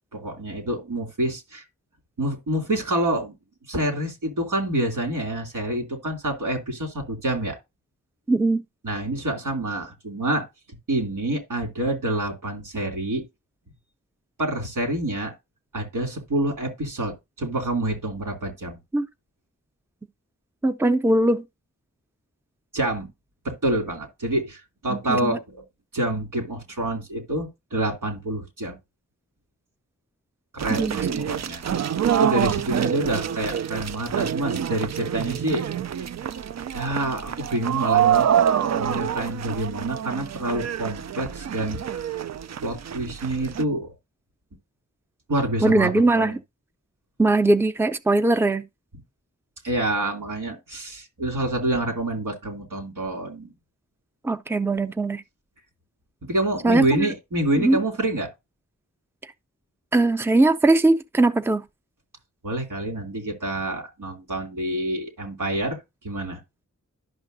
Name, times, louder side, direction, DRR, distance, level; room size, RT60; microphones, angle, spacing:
voice 1, 0.1-1.6 2.2-3.3 3.7-7.6 8.8-10.4 10.9-13.2 14.4-15.3 15.7-18.8 22.7-23.1 23.4-25.6 25.9-28.8 30.5-31.6 32.1-35.6 36.7-38.3 38.7-42.1 42.6-43.9 45.3-46.4 49.6-53.5 56.2-58.3 62.4-65.8 66.0-66.4, right 1 dB, 85° right, 2.8 m, -27 dB
voice 2, 8.3-8.6 18.9-19.1 20.6-21.4 24.9-25.4 30.7-31.0 45.6-46.4 47.2-48.6 54.2-55.2 56.6-57.1 57.6-57.8 59.9-61.6, right 2 dB, 5° right, 0.6 m, -20 dB
sound 1, 30.6-43.6, right 9 dB, 60° right, 0.5 m, -26 dB
11.5 x 5.7 x 2.7 m
cardioid pair, 45°, 31 cm